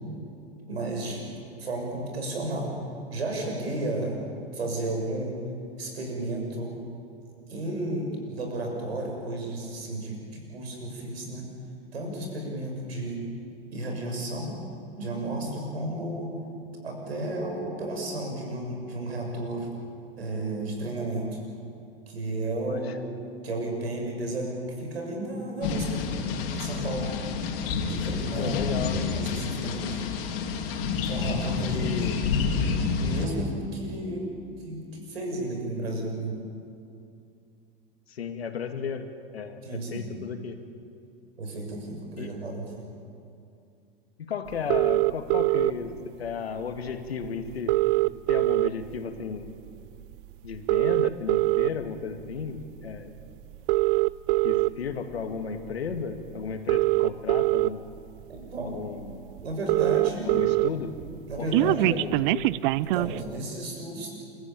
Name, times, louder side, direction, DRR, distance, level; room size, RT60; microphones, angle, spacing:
voice 1, 0.7-1.3 1.6-2.7 3.1-4.2 4.5-5.4 5.8-6.8 7.5-11.5 11.9-13.2 13.7-14.5 15.0-16.3 16.8-19.7 20.2-21.4 22.1-23.2 23.4-25.9 26.4-27.1 27.9-28.5 28.9-30.0 31.0-32.5 33.0-36.4 39.6-40.1 41.4-42.9 58.3-58.7 59.4-60.3 61.3-62.1 62.8-64.1, right 2 dB, 90° right, 1 dB, 6.8 m, -33 dB
voice 2, 22.7-23.0 28.4-29.1 31.7-32.2 38.1-39.1 39.3-39.6 39.9-40.6 42.1-42.3 44.2-47.8 48.3-49.5 50.4-53.1 54.4-57.8 58.7-59.2 60.2-61.0 61.4-62.6, left 6 dB, 90° left, 7 dB, 2.2 m, -34 dB
sound 1, 25.6-33.3, left 5 dB, 60° left, 3.4 m, -29 dB
sound 2, 44.7-45.7 46.9-47.0 47.2-47.3 47.5-49.0 49.5-49.7 50.5-51.7 52.4-52.6 53.5-54.7 55.9-56.0 56.5-57.7 58.4-58.5 58.8-58.9 59.1-59.2 59.4-60.7 61.0-63.2, right 20 dB, 60° right, 0.6 m, -23 dB
30.0 x 14.5 x 9.0 m, 2.5 s
hypercardioid pair, 100°, 30 cm